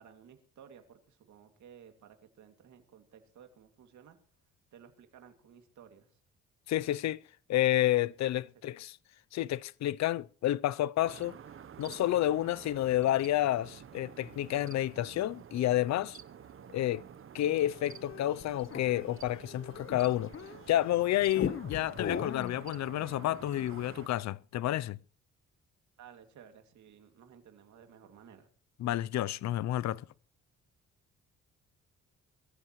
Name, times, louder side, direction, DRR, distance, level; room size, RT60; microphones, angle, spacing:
voice 1, 0.0-4.2 4.7-6.2 8.6-8.7 26.0-28.5, right 8 dB, 70° right, 2.4 m, -56 dB
voice 2, 6.7-7.2 7.5-9.0 9.3-11.4 11.8-16.2 16.7-17.0 17.3-20.3 20.7-25.0 28.8-30.0, left 13 dB, 65° left, 0.6 m, -30 dB
sound 1, 11.0-24.1, right 8 dB, 45° right, 0.9 m, -50 dB
sound 2, 17.8-20.8 21.3-22.6, left 7 dB, 45° left, 1.1 m, -38 dB
22.0 x 14.0 x 3.1 m
cardioid pair, 90°, 30 cm